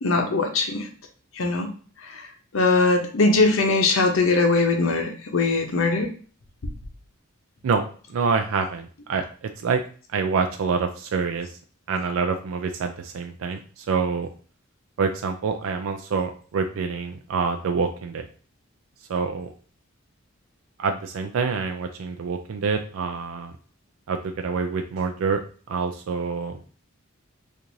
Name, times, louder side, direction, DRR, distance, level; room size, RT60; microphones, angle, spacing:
voice 1, 0.0-0.9 1.4-1.7 2.1-2.2 2.5-6.1, left 3 dB, 75° left, 4 dB, 0.7 m, -21 dB
voice 2, 7.6-9.8 10.1-11.6 11.9-14.3 15.0-18.3 19.1-19.5 20.8-23.5 24.1-25.4 25.7-26.6, right 5 dB, 80° right, 5 dB, 0.4 m, -26 dB
4.5 x 2.5 x 2.6 m, 0.42 s
head